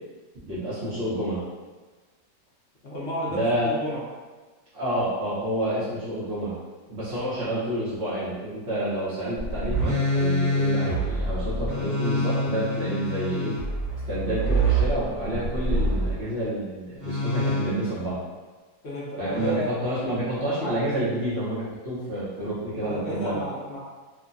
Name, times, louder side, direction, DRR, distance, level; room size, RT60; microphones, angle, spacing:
voice 1, 0.4-1.4 3.3-3.7 4.7-6.6 6.9-13.5 14.1-18.2 19.2-23.4, right 1 dB, 50° right, -10 dB, 0.9 m, -29 dB
voice 2, 2.8-4.1 18.8-19.8 22.8-23.8, equal, 55° left, -6 dB, 0.8 m, -32 dB
sound 1, 9.4-16.2 17.0-18.0 19.3-19.5, right 1 dB, 30° left, 1.3 m, -26 dB
3.1 x 2.2 x 2.5 m, 1.3 s
omnidirectional pair, 1.8 m